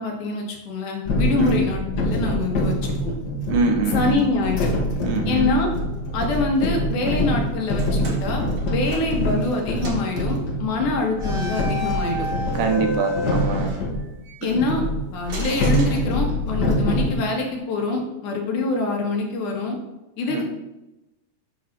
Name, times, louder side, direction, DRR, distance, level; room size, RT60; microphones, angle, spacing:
voice 1, 0.0-3.1 3.9-4.7 5.3-5.7 6.1-12.3 14.4-14.8 15.1-19.8 20.2-20.4, left 3 dB, 75° left, 1 dB, 2.8 m, -25 dB
sound 1, 1.0-14.0 14.5-17.1, equal, 50° left, 1.2 m, -25 dB
voice 2, 3.5-4.3 5.0-5.6 12.5-13.7 14.4-14.6 20.3-20.4, right 4 dB, 85° right, 4 dB, 2.6 m, -24 dB
sound 2, 7.7-9.5 9.8-10.1 11.2-14.4 15.3-16.7, left 1 dB, 55° right, 1.8 m, -32 dB
8.5 x 3.9 x 5.8 m, 0.97 s
omnidirectional pair, 3.7 m